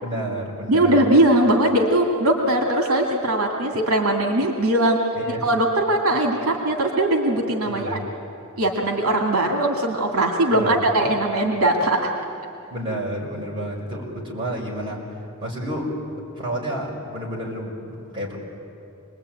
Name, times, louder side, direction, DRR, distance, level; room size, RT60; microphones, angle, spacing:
voice 1, 0.0-1.0 5.1-5.4 7.6-8.0 10.5-10.8 12.7-15.0 15.4-15.9 16.4-18.4, right 1 dB, 20° right, -4 dB, 5.4 m, -30 dB
voice 2, 0.7-5.0 5.3-8.0 8.6-12.1, right 1 dB, 75° right, 2 dB, 2.4 m, -20 dB
26.5 x 21.0 x 9.1 m, 2.7 s
head